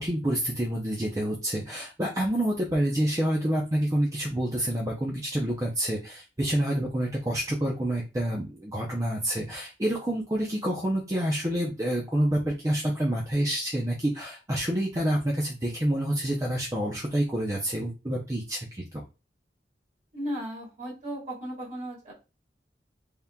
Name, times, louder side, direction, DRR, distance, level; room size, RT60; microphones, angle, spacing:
voice 1, 0.0-18.8, right 1 dB, 20° right, -2 dB, 0.6 m, -28 dB
voice 2, 20.1-22.1, equal, 45° right, -3 dB, 1.7 m, -35 dB
4.1 x 3.6 x 2.3 m, 0.29 s
head